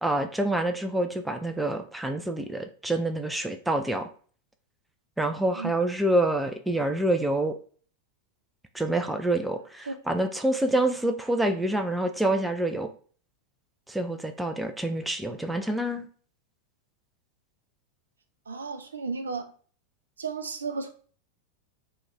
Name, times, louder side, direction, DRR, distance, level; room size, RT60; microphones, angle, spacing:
voice 1, 0.0-4.1 5.2-7.6 8.7-12.9 13.9-16.1, right 1 dB, 5° right, 6 dB, 0.3 m, -27 dB
voice 2, 18.5-19.4 20.2-20.9, right 4 dB, 75° right, 7 dB, 0.4 m, -33 dB
2.4 x 2.2 x 3.9 m, 0.43 s
figure-of-eight pair, 90°, 0 cm